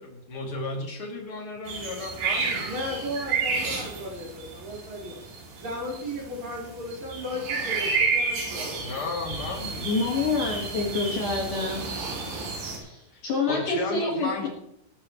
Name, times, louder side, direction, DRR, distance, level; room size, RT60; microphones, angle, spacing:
voice 1, 0.0-2.7 8.8-9.9 13.1-13.2 13.5-14.5, left 3 dB, 35° left, -1 dB, 2.6 m, -34 dB
sound 1, 1.7-12.8, right 4 dB, 60° right, 5.4 m, -31 dB
voice 2, 2.6-5.2 5.6-8.8, left 1 dB, 35° right, -4 dB, 5.4 m, -35 dB
voice 3, 9.8-11.8 12.7-14.5, left 3 dB, 55° left, -1 dB, 2.5 m, -27 dB
21.0 x 12.0 x 3.1 m, 0.75 s
omnidirectional pair, 5.8 m